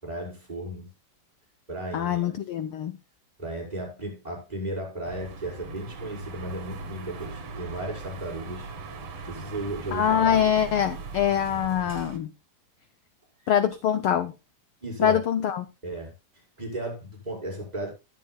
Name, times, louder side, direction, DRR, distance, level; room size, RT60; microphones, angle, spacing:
voice 1, 0.0-0.9 1.7-2.3 3.4-8.7 9.3-10.4 14.8-15.2 15.8-16.1 16.6-17.9, right 1 dB, 10° right, 5.6 m, -35 dB
voice 2, 1.9-3.0 9.9-12.3 13.5-14.3 15.0-15.7, left 9 dB, 85° left, 1.2 m, -24 dB
sound 1, 5.0-12.2, right 4 dB, 60° right, 3.0 m, -39 dB
21.0 x 7.8 x 2.3 m
omnidirectional pair, 3.3 m